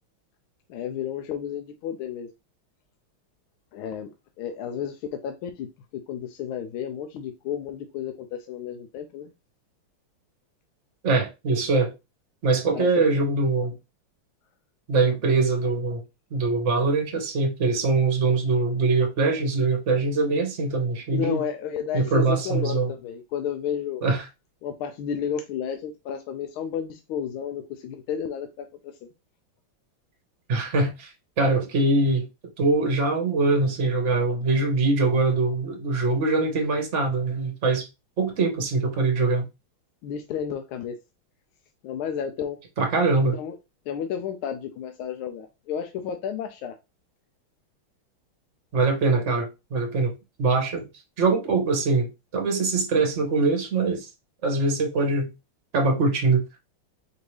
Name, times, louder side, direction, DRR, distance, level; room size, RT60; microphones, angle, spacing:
voice 1, 0.7-2.3 3.7-4.1 4.4-5.7 6.1-9.3 12.7-12.9 15.0-15.2 21.1-24.0 24.6-29.1 40.0-40.9 41.8-42.6 43.3-43.6 43.9-46.7, left 8 dB, 80° left, 1.4 m, -32 dB
voice 2, 11.0-11.9 12.4-13.7 14.9-16.0 16.3-21.4 21.9-22.9 24.0-24.2 30.5-32.2 32.6-37.9 38.2-39.5 42.8-43.4 48.7-50.1 50.4-50.9 51.2-52.1 52.3-54.1 54.4-55.3 55.7-56.4, right 3 dB, 40° right, 1.1 m, -23 dB
5.1 x 2.8 x 3.2 m
omnidirectional pair, 2.4 m